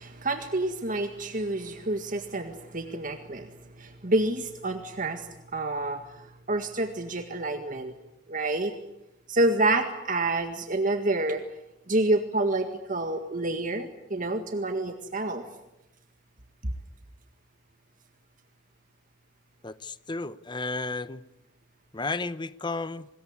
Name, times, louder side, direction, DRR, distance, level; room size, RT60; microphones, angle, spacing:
voice 1, 0.0-3.5 3.8-7.9 8.3-8.7 9.3-11.4 11.9-15.4, right 2 dB, 45° right, 1.9 m, -28 dB
voice 2, 19.6-21.2 21.9-23.1, left 3 dB, 25° left, 0.9 m, -33 dB
26.0 x 21.0 x 9.7 m
head